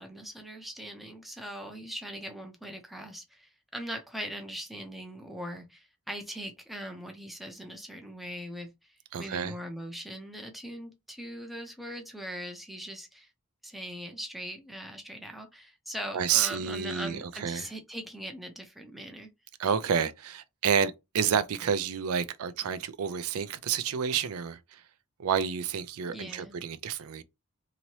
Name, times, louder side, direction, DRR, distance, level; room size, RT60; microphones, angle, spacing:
voice 1, 0.0-13.3 13.6-19.3 26.1-26.6, equal, ahead, 0.5 m, -41 dB
voice 2, 9.1-9.5 16.1-17.7 19.6-24.8 25.2-27.2, right 7 dB, 70° right, 0.4 m, -29 dB
2.9 x 2.7 x 3.0 m
head